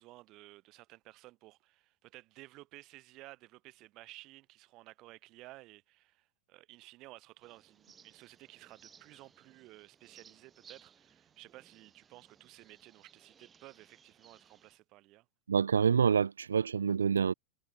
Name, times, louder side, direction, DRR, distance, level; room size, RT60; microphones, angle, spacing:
voice 1, 0.0-15.3, right 19 dB, 40° right, 6.1 m, -55 dB
sound 1, 7.4-14.8, right 7 dB, 20° right, 5.2 m, -62 dB
voice 2, 15.5-17.3, right 6 dB, 70° right, 0.6 m, -27 dB
figure-of-eight pair, 90°, 0 cm